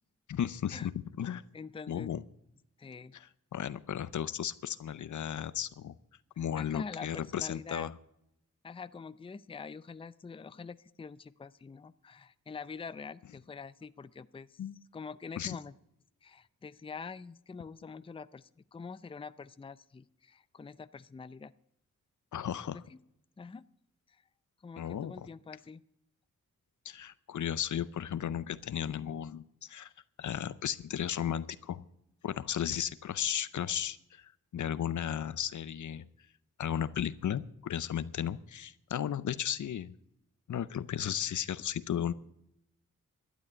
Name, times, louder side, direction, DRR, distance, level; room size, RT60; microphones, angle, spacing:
voice 1, 0.3-0.9 1.2-1.4 1.9-2.2 3.1-5.9 6.4-7.9 14.6-14.8 15.4-15.6 22.3-22.8 24.8-25.3 26.8-29.9 30.2-31.8 32.2-36.1 36.6-39.9 40.5-42.1, left 9 dB, 70° left, 16 dB, 0.6 m, -35 dB
voice 2, 1.5-2.1 2.8-3.2 6.4-7.9 8.6-14.6 14.9-15.7 16.2-21.5 22.7-23.0 23.4-23.7 24.1-24.2 24.6-25.8, left 5 dB, 20° left, 16 dB, 0.4 m, -45 dB
12.0 x 8.4 x 9.7 m, 0.79 s
cardioid pair, 70°, 31 cm